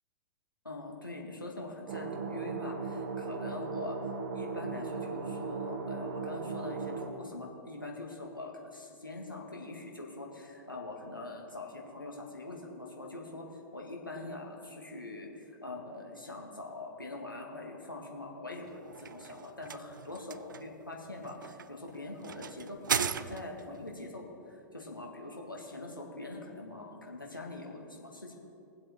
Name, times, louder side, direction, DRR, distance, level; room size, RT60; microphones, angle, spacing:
voice 1, 0.6-4.0 4.3-13.5 13.7-28.3, left 2 dB, 90° left, 0 dB, 1.9 m, -43 dB
sound 1, 1.9-7.1, right 5 dB, 50° right, 1.2 m, -37 dB
sound 2, 18.6-23.8, right 7 dB, 70° right, 0.4 m, -37 dB
21.5 x 7.7 x 3.8 m, 2.7 s
figure-of-eight pair, 100°, 11 cm